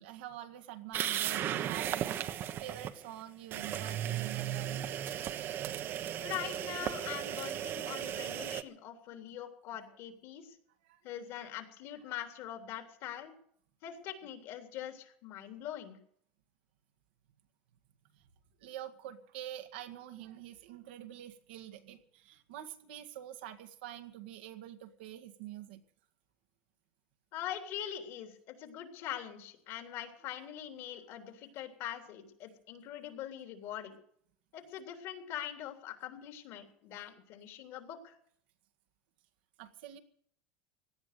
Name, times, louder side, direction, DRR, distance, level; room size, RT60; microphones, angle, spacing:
voice 1, 0.0-5.0 6.1-6.3 10.8-11.0 18.1-18.2 18.6-25.8 36.9-37.0 39.6-40.0, right 12 dB, 85° right, 7 dB, 1.8 m, -46 dB
sound 1, 0.9-2.9 3.5-8.6, right 11 dB, 45° right, 1.0 m, -36 dB
voice 2, 6.2-10.6 11.0-13.3 13.8-16.0 27.3-34.0 34.5-38.2, left 11 dB, 60° left, 5 dB, 3.4 m, -43 dB
17.5 x 11.5 x 6.8 m, 0.65 s
supercardioid pair, 120°, 5 cm